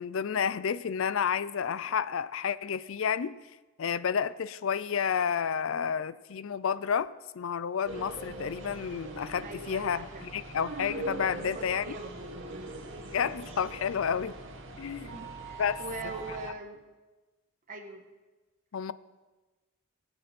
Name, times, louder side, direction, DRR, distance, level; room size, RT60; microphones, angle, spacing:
voice 1, 0.0-3.3 3.8-11.9 13.1-14.3 14.8-15.1 15.6-15.8 18.7-18.9, left 7 dB, 65° left, 17 dB, 0.4 m, -30 dB
sound 1, 7.8-16.5, right 2 dB, 60° right, 1.4 m, -42 dB
sound 2, 8.2-9.2 11.1-11.8, right 1 dB, 35° left, 3.4 m, -47 dB
voice 2, 9.4-10.2 11.5-12.1 12.5-12.7 14.1-14.3 15.0-16.8 17.7-18.0, right 2 dB, 40° right, 3 dB, 1.2 m, -42 dB
21.0 x 7.7 x 4.3 m, 1.2 s
head